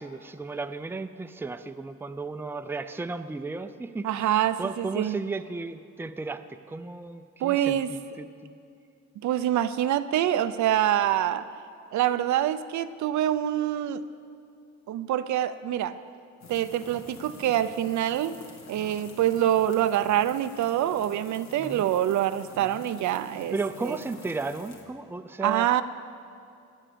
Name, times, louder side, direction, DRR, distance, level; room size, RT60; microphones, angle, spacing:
voice 1, 0.0-8.6 21.6-21.9 22.6-22.9 23.5-25.7, right 3 dB, 10° right, 9 dB, 0.5 m, -35 dB
voice 2, 4.0-5.2 7.4-7.9 9.2-11.4 11.9-14.0 14.9-16.0 16.5-18.4 18.7-23.5 23.8-24.0 25.4-25.8, right 11 dB, 70° right, 12 dB, 0.6 m, -25 dB
sound 1, 16.4-24.8, left 3 dB, 60° left, 1.9 m, -48 dB
18.0 x 7.4 x 6.8 m, 2.5 s
cardioid pair, 90°, 30 cm